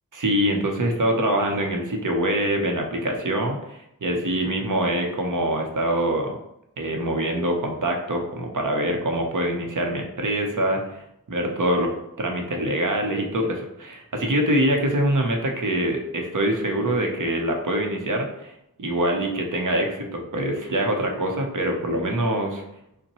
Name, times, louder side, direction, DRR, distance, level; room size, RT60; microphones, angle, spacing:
voice 1, 0.1-6.4 6.8-11.0 11.3-11.9 12.2-18.5 18.8-22.6, right 1 dB, 55° right, 2 dB, 0.8 m, -24 dB
5.5 x 2.2 x 3.0 m, 0.80 s
wide cardioid pair, 75°, 36 cm